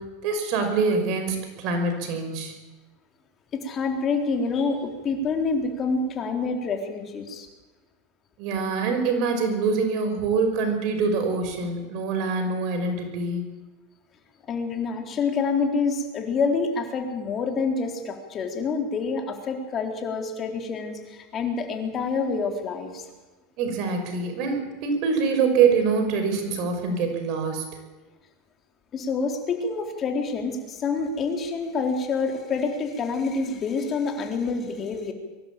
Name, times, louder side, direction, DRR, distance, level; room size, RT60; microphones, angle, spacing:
voice 1, 0.0-2.5 8.4-13.4 23.6-27.6, right 4 dB, 55° right, 5 dB, 5.9 m, -25 dB
voice 2, 3.5-7.5 14.5-23.1 28.9-35.1, left 4 dB, 35° left, 4 dB, 4.0 m, -27 dB
23.5 x 12.0 x 9.1 m, 1.2 s
hypercardioid pair, 105°, 0 cm